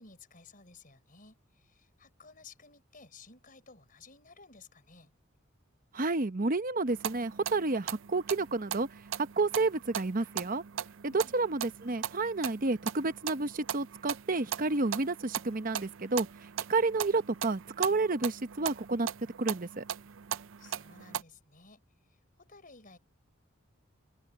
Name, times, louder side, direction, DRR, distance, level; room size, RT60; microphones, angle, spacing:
voice 1, 0.0-5.1 11.1-11.4 20.6-21.8 22.4-23.0, left 4 dB, 45° left, 4.9 m, -55 dB
voice 2, 5.9-8.9 9.2-10.6 11.0-16.3 16.7-19.1 19.4-19.8, right 3 dB, 40° right, 0.9 m, -30 dB
sound 1, 6.9-21.2, right 9 dB, 70° right, 0.5 m, -39 dB
open air
head